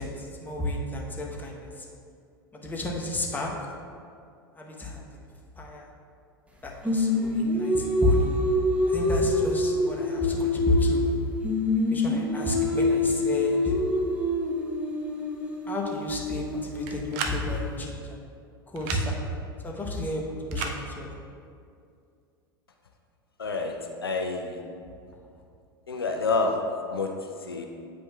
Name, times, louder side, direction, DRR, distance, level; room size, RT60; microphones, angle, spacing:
voice 1, 0.0-1.9 2.6-3.5 4.6-5.2 5.6-5.8 6.6-8.4 8.9-11.1 11.9-13.7 15.7-18.2 18.7-19.2 19.6-21.1, left 1 dB, 15° left, -1 dB, 1.0 m, -31 dB
Singing, 6.8-11.2 11.4-17.4, left 1 dB, 10° right, 0.9 m, -26 dB
sound 1, 16.9-17.4 18.8-19.0 20.5-20.8, right 5 dB, 50° right, 0.6 m, -32 dB
voice 2, 23.4-23.8 24.0-24.6 25.9-26.6 26.9-27.1 27.4-27.7, left 3 dB, 85° left, 3 dB, 0.5 m, -28 dB
8.6 x 5.2 x 2.3 m, 2.3 s
figure-of-eight pair, 80°, 12 cm